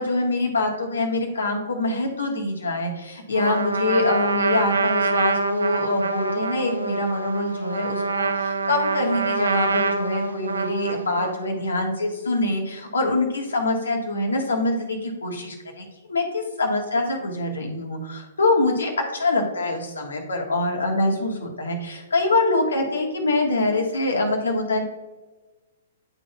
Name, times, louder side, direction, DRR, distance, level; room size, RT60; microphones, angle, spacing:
voice 1, 0.0-24.8, left 2 dB, 75° left, 1 dB, 1.4 m, -24 dB
Trumpet, 3.3-11.5, right 4 dB, 80° right, 0.5 m, -25 dB
10.5 x 4.0 x 2.3 m, 1.2 s
figure-of-eight pair, 115°, 0 cm